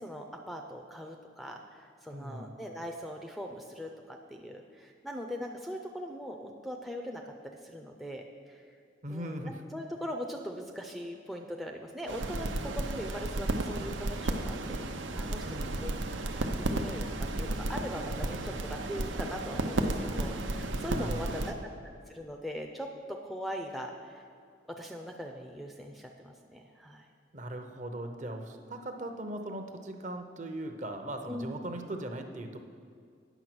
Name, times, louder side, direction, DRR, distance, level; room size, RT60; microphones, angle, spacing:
voice 1, 0.0-8.7 9.1-15.5 15.8-15.9 16.4-21.5 22.1-24.2 24.7-27.1 31.3-31.5, equal, ahead, 3 dB, 0.4 m, -41 dB
voice 2, 2.1-2.6 9.0-9.6 15.4-15.8 21.0-21.5 27.3-32.6, right 1 dB, 40° right, 5 dB, 0.7 m, -39 dB
sound 1, 12.1-21.5, right 2 dB, 85° right, 0.7 m, -33 dB
9.1 x 6.5 x 6.1 m, 2.3 s
head